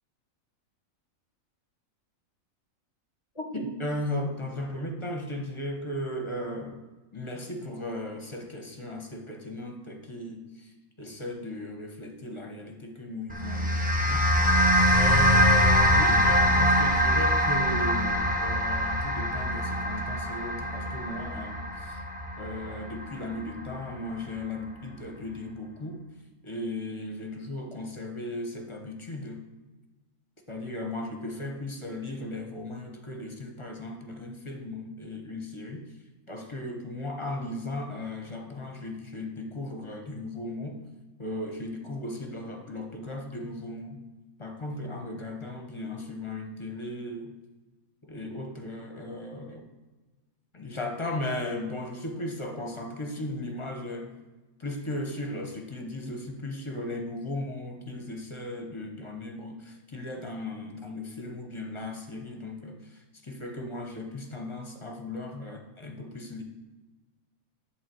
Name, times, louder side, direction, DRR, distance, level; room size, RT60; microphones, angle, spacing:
voice 1, 3.3-6.8 7.1-10.7 11.0-14.6 14.9-22.1 22.4-26.0 26.4-29.4 30.5-35.8 36.3-40.8 41.2-44.0 44.4-47.3 48.1-49.7 50.5-54.1 54.6-66.4, left 1 dB, 25° left, 3 dB, 1.1 m, -36 dB
sound 1, 13.3-23.8, equal, 5° right, 1.1 m, -24 dB
11.0 x 4.0 x 7.7 m, 1.2 s
omnidirectional pair, 1.4 m